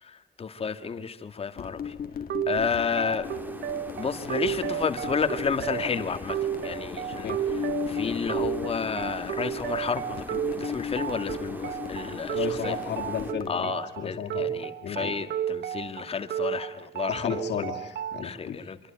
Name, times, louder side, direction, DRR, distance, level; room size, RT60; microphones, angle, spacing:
voice 1, 0.0-1.9 2.5-3.3 4.0-6.4 6.6-7.6 7.9-12.8 13.5-17.7 18.2-18.8, left 6 dB, 35° left, 9 dB, 1.8 m, -31 dB
sound 1, 1.6-13.5, left 7 dB, 55° left, 1.6 m, -37 dB
sound 2, 2.3-18.3, right 10 dB, 75° right, 1.1 m, -33 dB
sound 3, 3.2-13.3, right 1 dB, 10° right, 1.7 m, -43 dB
voice 2, 12.3-14.5 14.8-15.1 17.1-18.6, left 8 dB, 75° left, 3 dB, 2.6 m, -33 dB
26.5 x 24.0 x 8.8 m, 0.75 s
wide cardioid pair, 175°, 18 cm